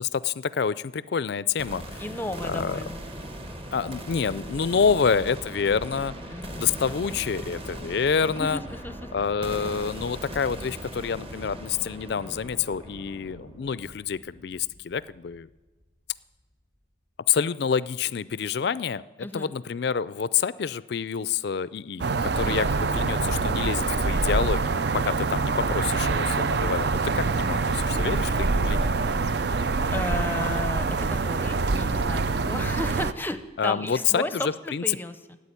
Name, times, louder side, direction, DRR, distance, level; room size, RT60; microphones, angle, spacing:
voice 1, 0.0-2.0 2.4-2.8 3.7-6.1 6.6-8.6 9.1-15.5 17.3-28.9 33.6-34.8, left 6 dB, 55° left, 18 dB, 0.4 m, -27 dB
sound 1, 1.6-15.5, equal, 30° right, 1.2 m, -39 dB
voice 2, 2.0-3.0 6.3-6.7 8.4-9.1 19.2-19.5 29.9-35.4, left 1 dB, 10° left, 10 dB, 0.6 m, -34 dB
sound 2, 22.0-33.1, right 4 dB, 55° right, 0.5 m, -25 dB
12.5 x 8.4 x 9.9 m, 1.2 s
head